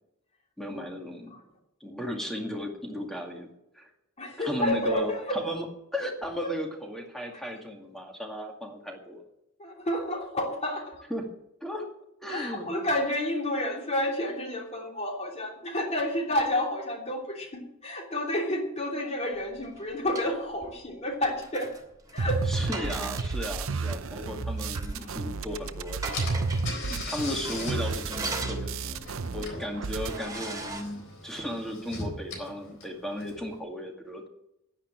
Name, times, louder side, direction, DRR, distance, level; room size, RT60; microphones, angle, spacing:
voice 1, 0.6-1.3 1.8-3.5 3.7-3.9 4.4-5.6 5.9-9.2 11.1-11.3 11.6-11.9 12.2-12.7 22.5-26.4 26.9-34.3, left 1 dB, ahead, 1 dB, 2.2 m, -35 dB
voice 2, 4.2-5.4 7.3-7.4 9.6-11.1 12.3-21.7 22.1-22.4 25.0-25.1, left 1 dB, 30° left, 1 dB, 3.0 m, -30 dB
sound 1, 19.5-20.3 21.2-23.5 23.9-24.0 24.6-25.0 25.3-25.4 25.8-26.7 27.3-29.1 29.5-29.6 30.0-30.8, right 2 dB, 15° right, 2.8 m, -39 dB
sound 2, 22.2-29.5 29.7-30.2, right 4 dB, 70° right, 0.7 m, -32 dB
Car / Engine, 25.7-25.8 26.1-33.6, left 2 dB, 60° left, 3.9 m, -40 dB
10.5 x 10.0 x 8.8 m, 0.84 s
head